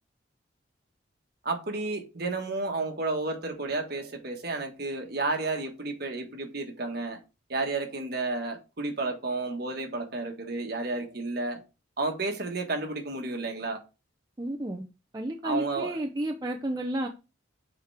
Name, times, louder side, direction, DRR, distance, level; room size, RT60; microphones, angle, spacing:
voice 1, 1.4-7.2 7.5-11.6 12.0-13.8 15.4-16.0, right 3 dB, 50° right, 1.4 m, -31 dB
voice 2, 14.4-14.8 15.1-17.1, right 1 dB, 20° right, 0.5 m, -31 dB
6.9 x 4.5 x 3.4 m
head